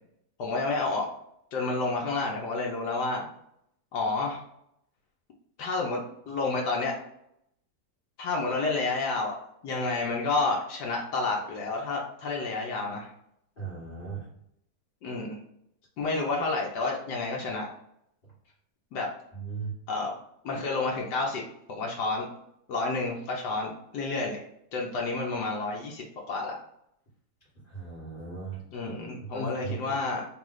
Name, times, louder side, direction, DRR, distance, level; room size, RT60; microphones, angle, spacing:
voice 1, 0.4-1.1 1.5-3.3 3.9-4.4 5.6-6.0 6.3-7.0 8.2-9.4 9.6-13.1 15.0-15.4 16.0-17.7 18.9-19.1 19.9-20.1 20.4-21.4 21.7-22.3 22.7-24.4 24.7-26.6 28.7-30.2, left 3 dB, 90° left, -2 dB, 1.3 m, -30 dB
voice 2, 13.6-14.3 19.3-19.7 27.6-28.6 29.2-30.0, right 4 dB, 35° left, -11 dB, 1.7 m, -37 dB
3.2 x 3.1 x 3.7 m, 0.76 s
omnidirectional pair, 1.7 m